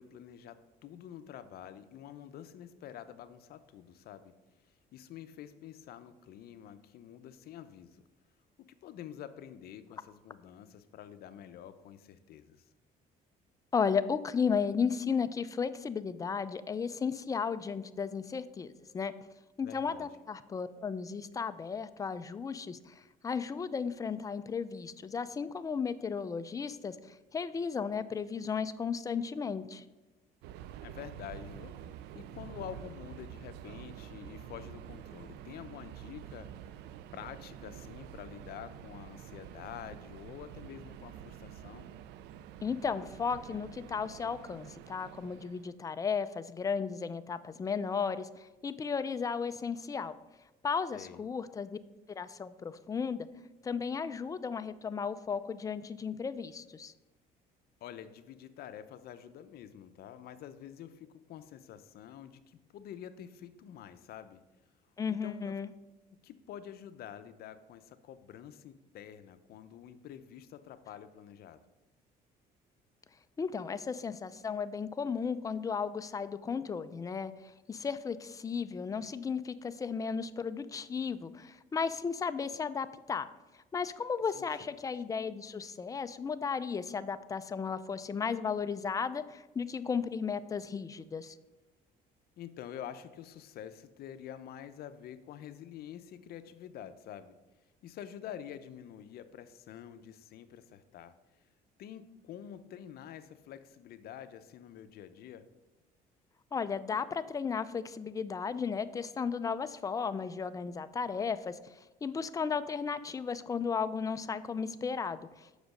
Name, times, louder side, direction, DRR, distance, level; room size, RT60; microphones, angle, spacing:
voice 1, 0.0-4.3 4.9-8.0 8.6-12.7 19.6-20.1 30.8-31.8 32.1-36.5 37.1-41.9 50.9-51.2 57.8-64.4 65.1-65.6 66.1-71.6 84.3-84.6 92.4-97.4 97.8-101.1 101.8-105.5, left 10 dB, 65° left, 12 dB, 0.6 m, -47 dB
voice 2, 13.7-19.1 19.6-22.9 23.2-27.0 27.3-29.8 42.6-50.2 50.6-51.8 52.1-53.3 53.6-56.9 65.0-65.7 73.4-77.3 77.7-83.3 83.7-91.4 106.5-111.6 112.0-115.5, left 6 dB, 20° left, 12 dB, 0.4 m, -34 dB
Subway metro underground, 30.4-45.8, right 10 dB, 85° right, 0.4 m, -48 dB
6.2 x 5.1 x 6.4 m, 1.1 s
cardioid pair, 110°, 17 cm